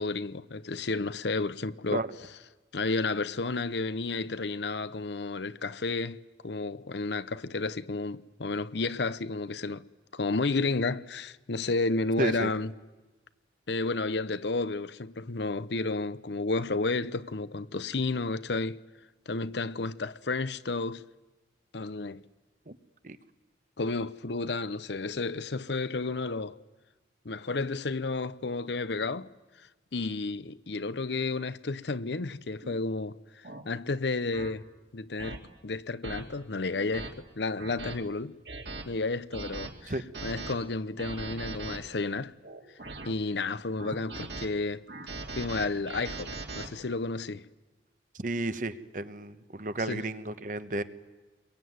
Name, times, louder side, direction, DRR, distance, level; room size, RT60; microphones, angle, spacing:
voice 1, 0.0-2.0 2.7-9.8 10.1-12.7 13.7-18.8 19.3-21.0 21.7-22.2 23.8-26.6 27.2-29.3 29.9-34.7 34.9-38.4 38.9-39.9 40.2-42.3 43.0-44.8 45.4-47.5 49.9-50.1, left 3 dB, 75° left, 0.8 m, -32 dB
voice 2, 12.2-12.5 22.7-22.8 23.0-23.2 39.9-40.0 48.2-50.8, right 2 dB, 45° right, 1.1 m, -32 dB
sound 1, 32.6-32.8 33.4-33.6 34.3-34.5 35.2-35.4 36.0-36.2 36.7-37.1 37.6-38.0 38.5-38.8 39.3-39.7 40.1-40.5 41.0-41.8 42.4-43.1 43.8-44.5 44.9-46.7, right 3 dB, 65° right, 2.8 m, -39 dB
27.5 x 22.5 x 9.5 m
head